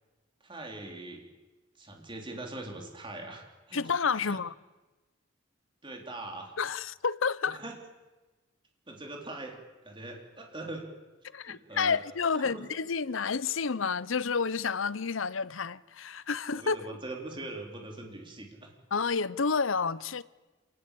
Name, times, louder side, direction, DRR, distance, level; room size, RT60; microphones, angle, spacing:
voice 1, 0.4-1.2 1.8-3.8 4.2-4.4 5.8-6.6 7.5-7.7 8.9-9.6 9.8-10.9 11.4-12.0 12.4-12.6 16.5-18.7, right 2 dB, 25° right, 3.8 m, -42 dB
voice 2, 3.7-4.5 6.6-7.6 11.3-16.9 18.9-20.2, left 5 dB, 75° left, 0.8 m, -30 dB
28.0 x 19.5 x 8.6 m
head